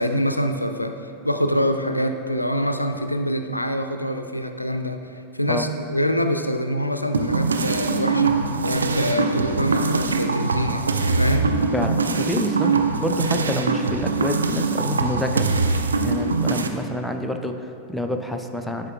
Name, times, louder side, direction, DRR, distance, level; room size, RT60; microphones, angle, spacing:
voice 1, 0.0-8.4 8.6-10.9 11.2-11.5, equal, 85° left, 7 dB, 0.3 m, -25 dB
sound 1, 7.1-16.7, right 4 dB, 75° right, 0.3 m, -22 dB
voice 2, 11.7-15.8 16.0-18.9, left 1 dB, 5° left, 5 dB, 0.4 m, -28 dB
10.5 x 4.8 x 2.5 m, 2.7 s
figure-of-eight pair, 90°, 0 cm